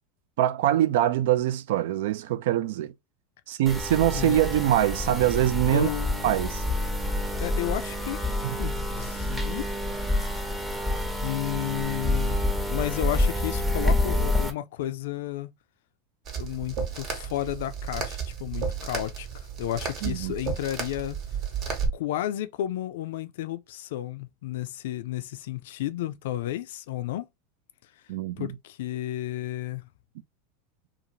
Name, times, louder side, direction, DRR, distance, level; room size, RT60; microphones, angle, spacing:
voice 1, 0.4-2.9 3.5-5.9 6.2-6.6 8.4-8.6 20.0-20.3 28.1-28.5, right 12 dB, 75° right, 0.3 m, -24 dB
sound 1, 3.7-14.5, left 1 dB, 5° right, 0.7 m, -28 dB
voice 2, 5.7-6.3 7.4-8.2 8.6-9.7 11.2-12.4 12.7-15.5 16.4-19.3 19.6-21.2 21.9-27.3 28.4-29.8, left 13 dB, 75° left, 0.3 m, -32 dB
sound 2, 16.3-21.9, right 6 dB, 45° right, 0.9 m, -33 dB
2.6 x 2.4 x 2.8 m
hypercardioid pair, 110°, 0 cm